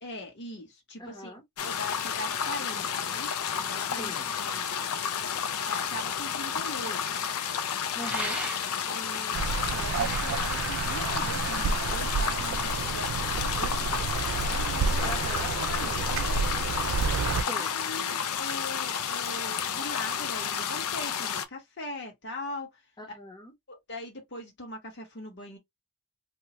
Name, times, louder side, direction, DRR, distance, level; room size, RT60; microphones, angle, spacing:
voice 1, 0.0-1.3 1.6-5.0 5.6-7.2 8.9-16.6 17.5-22.8 23.7-25.6, left 1 dB, 55° left, 1.4 m, -41 dB
voice 2, 1.0-1.4 4.0-4.3 7.9-8.4 15.0-15.6 17.5-18.2 23.0-23.5, left 1 dB, 20° left, 1.0 m, -41 dB
sound 1, 1.6-21.5, left 7 dB, 75° left, 0.5 m, -31 dB
sound 2, 8.0-9.0 9.8-11.5, right 1 dB, 5° right, 0.6 m, -38 dB
sound 3, 9.3-17.4, right 5 dB, 60° right, 0.3 m, -30 dB
2.8 x 2.3 x 2.9 m
head